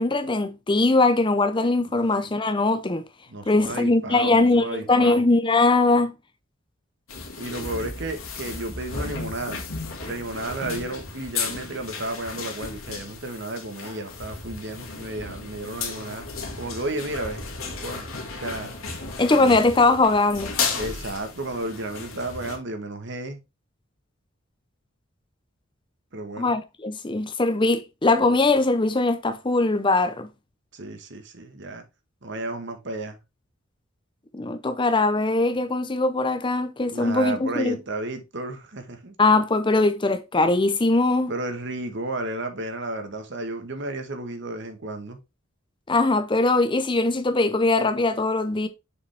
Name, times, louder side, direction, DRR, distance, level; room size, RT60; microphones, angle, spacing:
voice 1, 0.0-3.0 3.5-6.1 19.2-20.5 26.4-30.3 34.3-37.8 39.2-41.3 45.9-48.7, left 2 dB, 25° left, 0.6 m, -21 dB
voice 2, 1.9-2.3 3.3-5.3 7.4-9.6 10.1-16.2 16.6-17.5 17.8-18.1 18.4-18.7 19.3-19.7 20.7-23.4 26.1-26.5 30.7-31.8 32.2-33.2 36.9-39.1 41.3-45.2, right 2 dB, 60° right, 1.3 m, -33 dB
sound 1, 7.1-22.6, left 4 dB, 80° left, 2.0 m, -34 dB
6.8 x 5.0 x 3.4 m
head